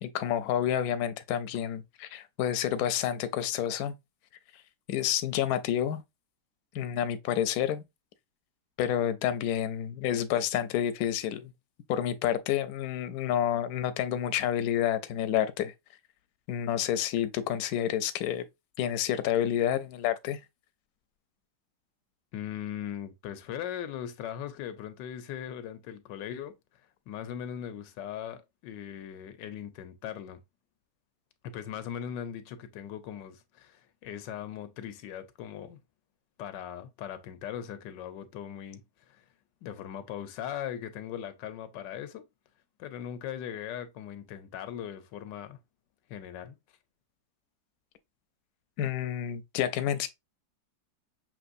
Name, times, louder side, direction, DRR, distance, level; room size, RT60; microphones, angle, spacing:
voice 1, 0.0-3.9 4.9-6.0 6.7-7.8 8.8-11.5 11.9-15.7 16.5-18.4 18.8-20.4 48.8-50.1, left 10 dB, 70° left, 0.9 m, -29 dB
voice 2, 22.3-26.5 27.1-30.4 31.4-35.8 36.4-38.8 39.1-39.2 39.6-42.2 42.8-45.6 46.1-46.6, left 9 dB, 90° left, 1.3 m, -39 dB
6.0 x 3.0 x 2.5 m
omnidirectional pair, 1.9 m